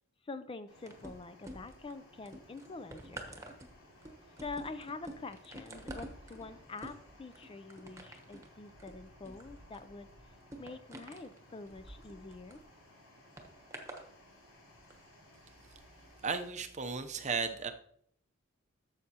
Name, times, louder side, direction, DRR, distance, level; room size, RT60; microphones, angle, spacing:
voice 1, 0.2-3.4 4.4-10.1 10.6-12.6, left 3 dB, 25° left, 12 dB, 0.4 m, -46 dB
sound 1, 0.7-16.5, left 1 dB, 80° left, 3.7 m, -60 dB
sound 2, 0.9-1.9 2.3-12.6 13.4-14.1 14.8-14.9, right 1 dB, 15° right, 1.1 m, -49 dB
voice 2, 16.2-17.7, right 5 dB, 35° right, 8 dB, 0.6 m, -35 dB
12.5 x 7.3 x 2.8 m, 0.67 s
head